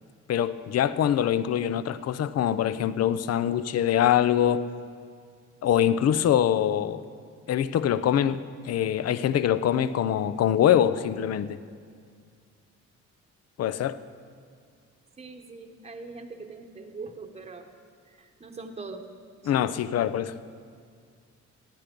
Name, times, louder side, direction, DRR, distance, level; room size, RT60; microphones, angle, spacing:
voice 1, 0.3-4.6 5.6-7.0 7.5-8.4 8.6-11.6 13.6-14.0 19.5-20.4, left 10 dB, 55° left, 14 dB, 0.6 m, -24 dB
voice 2, 15.2-17.7 18.1-19.1 19.4-19.5, right 4 dB, 20° right, 5 dB, 1.0 m, -42 dB
16.0 x 10.0 x 5.3 m, 2.1 s
cardioid pair, 90°, 30 cm